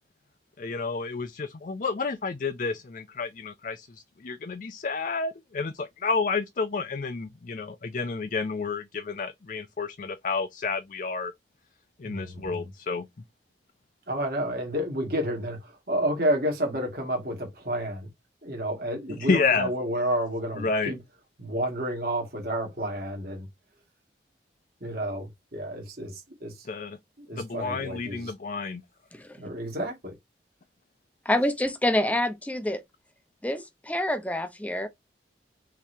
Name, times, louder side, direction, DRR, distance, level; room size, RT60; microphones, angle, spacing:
voice 1, 0.6-11.3 12.0-13.1 19.2-19.7 20.6-20.9 26.7-27.0 27.3-28.8, left 4 dB, 45° left, 0.5 m, -30 dB
voice 2, 12.0-12.7 14.1-18.1 18.4-21.0 21.4-23.5 24.8-26.7 27.2-28.3 29.4-30.1, equal, 55° right, 2.2 m, -30 dB
voice 3, 31.2-32.8 33.4-34.9, left 1 dB, 10° left, 0.7 m, -27 dB
5.8 x 3.2 x 2.7 m
head